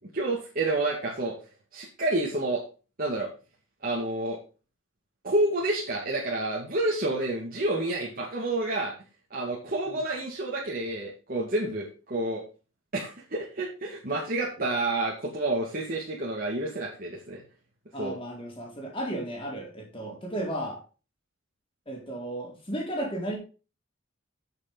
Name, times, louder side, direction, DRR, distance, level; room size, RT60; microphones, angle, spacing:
voice 1, 0.1-1.3 1.7-2.6 3.0-3.3 3.8-4.4 5.2-8.9 9.3-12.4 12.9-17.4 18.0-18.2, right 2 dB, 45° right, -3 dB, 2.2 m, -29 dB
voice 2, 17.9-20.8 21.9-23.4, right 1 dB, 25° left, -1 dB, 3.9 m, -34 dB
8.9 x 6.6 x 5.4 m, 0.35 s
head